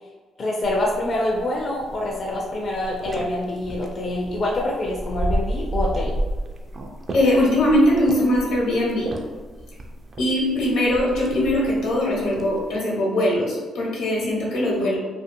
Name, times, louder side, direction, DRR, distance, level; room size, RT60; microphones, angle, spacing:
voice 1, 0.4-6.1, left 1 dB, 45° left, -2 dB, 0.4 m, -26 dB
sound 1, 0.6-12.8, right 1 dB, 40° right, 0.4 m, -32 dB
voice 2, 7.1-9.1 10.2-15.0, left 1 dB, 85° left, -4 dB, 0.9 m, -21 dB
2.5 x 2.4 x 2.6 m, 1.3 s
cardioid pair, 90°, 0 cm